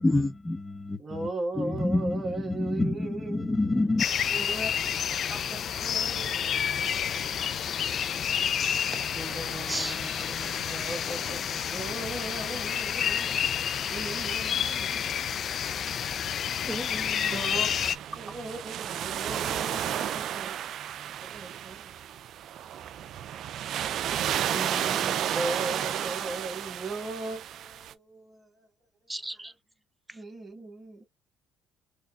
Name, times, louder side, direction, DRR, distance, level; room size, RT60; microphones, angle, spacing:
voice 1, 0.0-1.3 1.6-4.0, left 2 dB, 15° left, 0.9 m, -27 dB
voice 2, 1.0-3.5 4.3-4.7 5.5-7.7 9.2-13.4 13.9-15.1 17.3-20.6 21.2-22.0 22.7-22.8 25.2-28.7 29.2-29.4 30.1-31.0, right 2 dB, 25° right, 1.6 m, -38 dB
sound 1, 4.0-18.0, left 8 dB, 50° left, 0.5 m, -29 dB
voice 3, 16.7-17.3 24.1-25.3 29.1-29.5, right 2 dB, 10° right, 0.7 m, -37 dB
sound 2, 17.2-27.9, right 10 dB, 60° right, 0.5 m, -32 dB
4.0 x 3.3 x 2.3 m
supercardioid pair, 85°, 0 cm